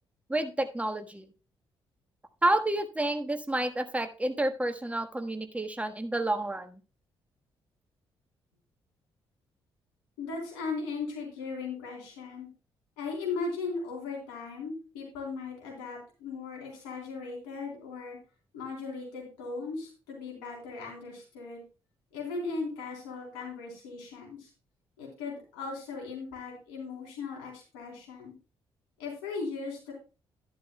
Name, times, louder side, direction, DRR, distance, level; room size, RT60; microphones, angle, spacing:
voice 1, 0.3-1.3 2.4-6.8, right 1 dB, 10° right, 8 dB, 1.4 m, -29 dB
voice 2, 10.2-12.5 13.0-18.2 18.5-21.6 22.1-24.5 25.0-28.3 29.0-29.9, left 4 dB, 80° left, -1 dB, 3.6 m, -37 dB
11.5 x 11.0 x 2.3 m, 0.32 s
hypercardioid pair, 40°, 13 cm